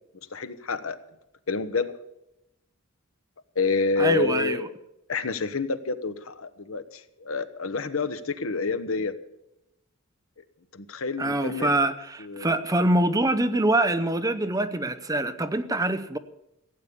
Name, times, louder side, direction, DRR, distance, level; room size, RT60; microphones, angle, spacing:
voice 1, 0.3-1.0 1.5-1.9 3.5-4.7 5.1-9.1 10.7-11.7 12.2-12.5, left 4 dB, 80° left, 12 dB, 1.0 m, -28 dB
voice 2, 4.0-4.7 11.2-16.2, right 1 dB, 15° right, 10 dB, 0.7 m, -24 dB
16.0 x 8.6 x 8.5 m, 0.87 s
head